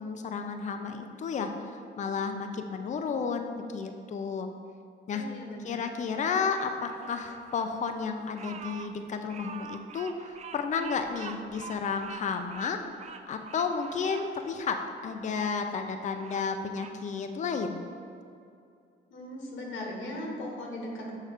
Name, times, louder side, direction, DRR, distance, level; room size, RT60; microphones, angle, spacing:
voice 1, 0.0-1.5 2.0-4.5 5.1-5.2 5.6-12.8 13.3-14.8 15.0-17.8, left 5 dB, 40° left, 6 dB, 0.4 m, -32 dB
voice 2, 5.1-5.9 19.1-21.2, left 1 dB, 75° left, -1 dB, 1.2 m, -38 dB
Bird vocalization bird call bird song, 6.5-15.5 16.0-17.0, right 6 dB, 35° right, 0.4 m, -46 dB
6.4 x 3.2 x 4.9 m, 2.4 s
cardioid pair, 90°, 20 cm